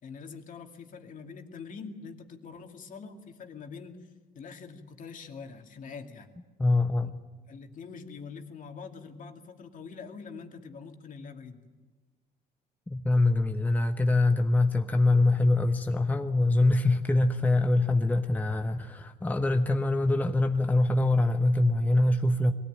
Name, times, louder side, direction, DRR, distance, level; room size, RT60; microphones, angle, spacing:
voice 1, 0.0-6.3 7.0-7.1 7.5-11.6, left 5 dB, 50° left, 4 dB, 2.4 m, -44 dB
voice 2, 6.6-7.2 12.9-22.5, left 2 dB, 10° left, 5 dB, 0.9 m, -24 dB
22.5 x 17.5 x 9.4 m, 1.3 s
cardioid pair, 110°, 17 cm